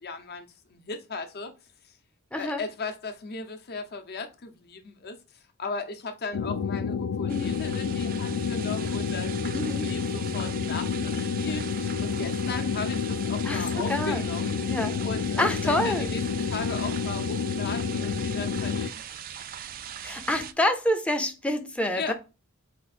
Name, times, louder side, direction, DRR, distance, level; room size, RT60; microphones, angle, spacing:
voice 1, 0.0-1.5 2.3-5.2 5.6-14.6 15.0-16.2 16.5-19.2 22.0-22.1, left 3 dB, 45° left, 0.8 m, -37 dB
voice 2, 2.3-2.6 7.3-7.5 9.5-9.9 13.4-14.2 14.7-14.9 15.4-16.1 20.0-22.1, left 1 dB, 5° left, 0.6 m, -27 dB
sound 1, 6.3-18.9, left 6 dB, 85° left, 0.4 m, -29 dB
sound 2, 7.3-20.5, right 9 dB, 40° right, 0.3 m, -40 dB
4.4 x 2.4 x 4.2 m
head